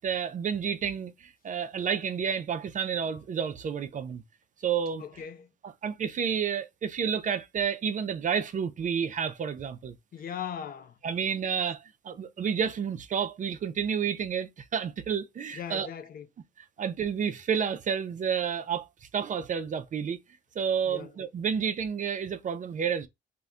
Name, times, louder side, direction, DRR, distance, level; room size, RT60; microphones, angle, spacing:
voice 1, 0.0-4.2 4.6-5.0 5.8-9.9 11.0-15.9 16.8-18.8 19.1-20.2 20.6-23.1, right 7 dB, 40° right, 0.4 m, -30 dB
voice 2, 5.0-5.5 10.1-11.0 15.5-16.3 20.9-21.1, left 8 dB, 50° left, 0.5 m, -39 dB
2.2 x 2.1 x 3.6 m
cardioid pair, 90°, 20 cm